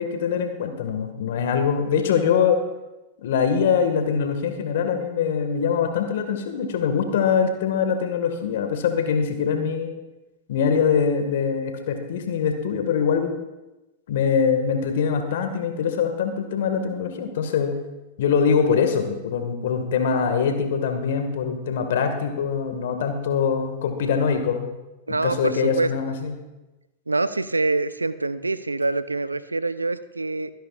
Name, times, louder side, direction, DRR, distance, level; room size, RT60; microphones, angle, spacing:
voice 1, 0.0-2.6 3.2-9.9 10.5-13.3 14.1-17.8 18.2-24.7 25.1-26.3, left 6 dB, 65° left, 6 dB, 1.9 m, -23 dB
voice 2, 25.1-25.9 27.1-30.5, right 3 dB, 90° right, 15 dB, 0.5 m, -25 dB
24.0 x 10.5 x 2.5 m, 1.0 s
figure-of-eight pair, 95°, 0 cm